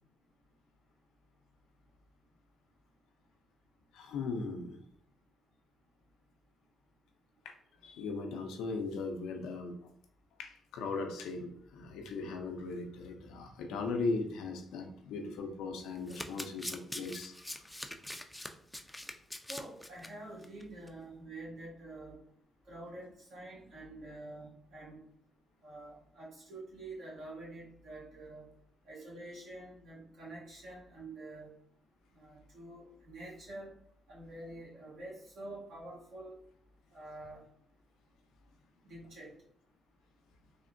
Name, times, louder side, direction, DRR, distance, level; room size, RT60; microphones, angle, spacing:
voice 1, 3.9-4.8 7.4-7.6 7.8-9.8 10.4-17.4, left 3 dB, 90° left, 5 dB, 0.4 m, -38 dB
Domestic sounds home sounds, 16.0-20.1 20.4-20.6 20.9-21.0, left 1 dB, 5° left, 0.4 m, -43 dB
voice 2, 19.5-22.2 22.7-25.0 25.6-28.5 28.8-31.5 32.2-33.7 34.1-36.4 36.9-37.4 38.8-39.3, right 2 dB, 75° right, -5 dB, 1.4 m, -47 dB
3.4 x 2.1 x 2.5 m, 0.68 s
cardioid pair, 70°, 0 cm